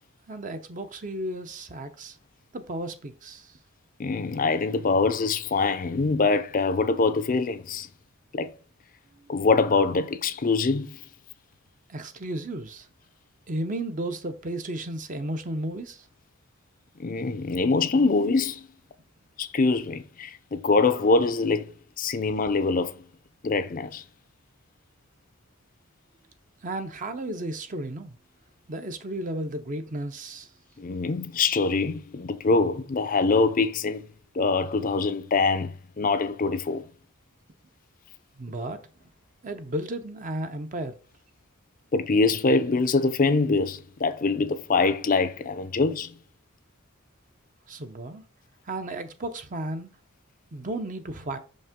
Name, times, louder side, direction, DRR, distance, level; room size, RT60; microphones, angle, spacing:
voice 1, 0.3-2.2 2.5-3.5 11.9-12.9 13.5-16.0 26.6-28.2 28.7-30.5 38.4-38.8 39.4-40.9 47.7-48.2 48.7-49.9 50.5-51.4, right 1 dB, 40° right, 0.7 m, -33 dB
voice 2, 4.0-7.9 8.3-8.5 9.3-11.0 17.0-18.7 19.4-21.7 22.0-22.9 23.4-24.0 30.8-34.0 34.4-36.8 41.9-46.1, left 3 dB, 40° left, 0.5 m, -24 dB
5.9 x 5.3 x 3.6 m
head